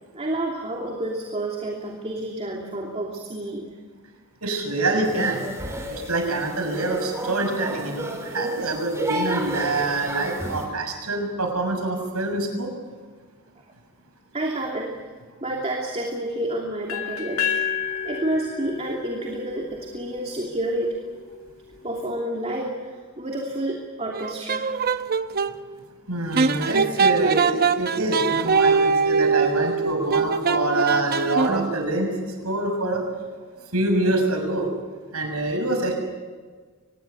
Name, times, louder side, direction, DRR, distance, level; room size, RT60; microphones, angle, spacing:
voice 1, 0.1-3.8 14.3-15.0 15.4-17.5 18.0-21.0 21.8-24.7 27.6-27.7, right 1 dB, 30° right, 0 dB, 2.9 m, -29 dB
voice 2, 4.4-5.4 5.9-12.7 26.1-32.1 32.4-33.0 33.7-34.7 35.1-35.9, right 2 dB, 90° right, 4 dB, 6.5 m, -25 dB
sound 1, 5.0-10.7, right 1 dB, 15° right, 4.2 m, -32 dB
sound 2, 16.9-20.8, left 8 dB, 70° left, 2.7 m, -30 dB
sound 3, 24.1-25.5 26.4-31.8, right 5 dB, 45° right, 0.9 m, -22 dB
24.0 x 21.0 x 8.2 m, 1.5 s
head